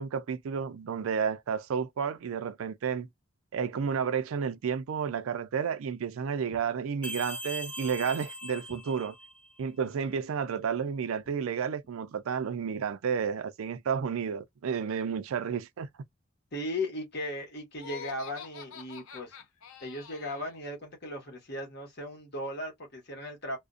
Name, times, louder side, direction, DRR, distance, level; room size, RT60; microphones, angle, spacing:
voice 1, 0.0-3.1 3.5-9.1 9.6-15.9, right 6 dB, 85° right, 0.4 m, -31 dB
sound 1, 7.0-9.6, equal, 5° left, 0.4 m, -40 dB
voice 2, 16.5-19.4 19.8-23.6, left 1 dB, 50° left, 1.1 m, -37 dB
Laughter, 17.8-20.6, left 7 dB, 80° left, 0.5 m, -46 dB
2.4 x 2.1 x 2.4 m
head